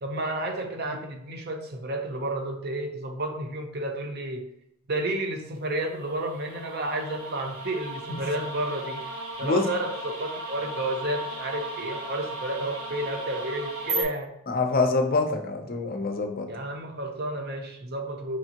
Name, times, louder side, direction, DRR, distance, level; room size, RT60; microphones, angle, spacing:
voice 1, 0.0-4.4 4.9-9.0 9.4-14.3 16.5-18.4, right 1 dB, 45° right, 3 dB, 0.7 m, -31 dB
sound 1, 5.9-14.0, right 2 dB, 75° right, 1.2 m, -35 dB
voice 2, 14.5-16.5, left 3 dB, 40° left, 5 dB, 0.5 m, -25 dB
5.0 x 3.4 x 2.8 m, 0.77 s
head